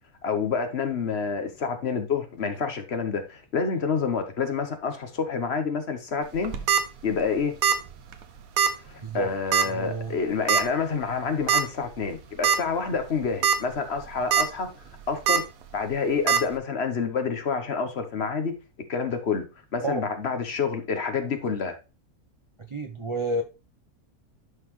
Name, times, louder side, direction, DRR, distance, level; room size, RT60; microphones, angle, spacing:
voice 1, 0.2-6.6 7.0-7.5 8.8-14.7 15.1-15.4 15.7-18.5 18.9-19.4 19.7-21.7, left 5 dB, 50° left, 1.2 m, -28 dB
sound 1, 6.4-6.8 7.6-7.9 8.1-8.2 8.6-8.7 9.5-9.8 10.5-10.6 11.5-11.6 12.1-12.2 12.4-12.6 13.2-13.6 14.0-14.4 15.3-15.4 16.3-16.4, right 7 dB, 75° right, 1.3 m, -21 dB
voice 2, 9.6-10.2 19.8-20.0 22.7-23.4, right 1 dB, 40° right, 0.4 m, -29 dB
11.0 x 4.0 x 3.1 m
omnidirectional pair, 1.5 m